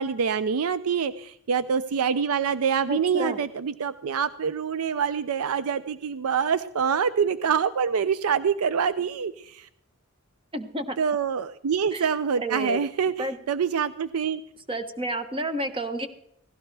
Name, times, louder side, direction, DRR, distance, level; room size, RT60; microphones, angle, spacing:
voice 1, 0.0-9.7 11.0-14.4, right 6 dB, 85° right, 14 dB, 0.5 m, -26 dB
voice 2, 2.9-3.4 10.5-11.0 11.9-12.1 12.3-12.8 13.2-13.4 14.7-16.1, right 1 dB, 25° right, 8 dB, 1.0 m, -30 dB
16.5 x 16.0 x 3.3 m, 0.74 s
head